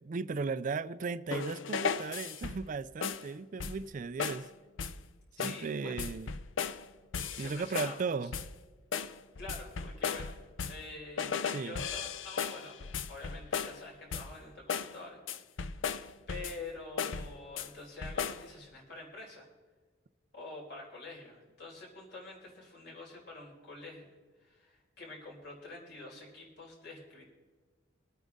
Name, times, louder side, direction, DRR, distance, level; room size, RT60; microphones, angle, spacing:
voice 1, 0.0-4.5 5.4-6.3 7.4-8.3 11.5-11.8, right 4 dB, 40° right, 15 dB, 0.4 m, -36 dB
sound 1, 1.3-2.7 3.0-3.3 3.6-3.9 4.2-4.5 4.8-5.1 5.4-5.7 6.0-6.8 7.1-8.0 8.3-8.6 8.9-10.9 11.2-13.8 14.1-14.4 14.7-15.0 15.3-16.7 17.0-17.7 18.0-18.5, left 6 dB, 75° left, 0.6 m, -36 dB
voice 2, 5.4-6.0 7.3-7.9 8.2-8.3 9.4-10.3 10.6-12.8 13.1-15.9 16.3-19.5 20.3-27.3, left 2 dB, 60° left, -2 dB, 4.8 m, -47 dB
23.5 x 9.1 x 3.7 m, 1.4 s
head